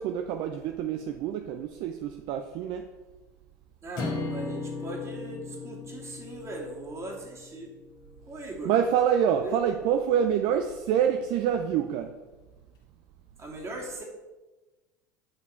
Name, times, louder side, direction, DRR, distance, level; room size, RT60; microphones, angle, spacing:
voice 1, 0.0-2.8 8.6-12.1, right 8 dB, 55° right, 7 dB, 0.6 m, -26 dB
voice 2, 3.8-7.7 8.3-8.7 9.4-9.6 10.5-10.6 13.4-14.0, right 2 dB, 30° right, -1 dB, 2.7 m, -39 dB
sound 1, 4.0-8.3, left 3 dB, 50° left, 1.9 m, -37 dB
9.2 x 5.9 x 4.5 m, 1.2 s
hypercardioid pair, 75°, 9 cm